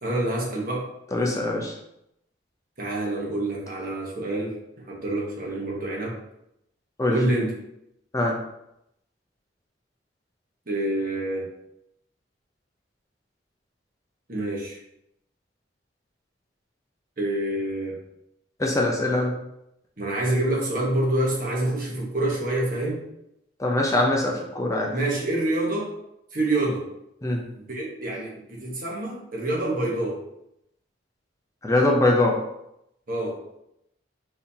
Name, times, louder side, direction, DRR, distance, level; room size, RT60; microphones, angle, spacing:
voice 1, 0.0-0.9 2.8-4.5 4.9-6.2 7.1-7.5 10.7-11.5 14.3-14.8 17.2-18.0 20.0-23.0 24.9-25.9 26.3-26.8 27.6-30.2 33.1-33.4, right 1 dB, 50° right, -3 dB, 1.1 m, -27 dB
voice 2, 1.1-1.7 7.0-7.2 8.1-8.4 18.6-19.4 23.6-24.9 27.2-27.4 31.6-32.4, left 2 dB, 20° left, -1 dB, 0.6 m, -22 dB
4.1 x 4.1 x 2.8 m, 0.80 s
head